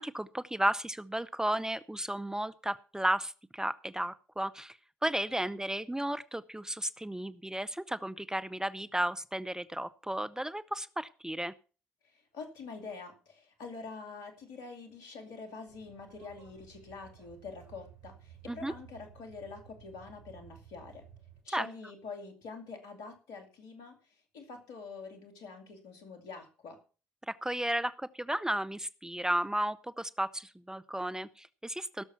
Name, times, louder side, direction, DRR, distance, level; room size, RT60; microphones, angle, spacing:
voice 1, 0.0-11.5 18.5-18.7 21.5-21.7 27.3-32.0, right 1 dB, 10° right, 14 dB, 0.7 m, -34 dB
voice 2, 12.0-21.0 21.4-24.0 24.3-26.8, left 4 dB, 70° left, 6 dB, 2.4 m, -46 dB
sound 1, 15.7-21.4, right 8 dB, 70° right, 3.1 m, -55 dB
16.5 x 6.9 x 5.6 m, 0.37 s
hypercardioid pair, 45°, 7 cm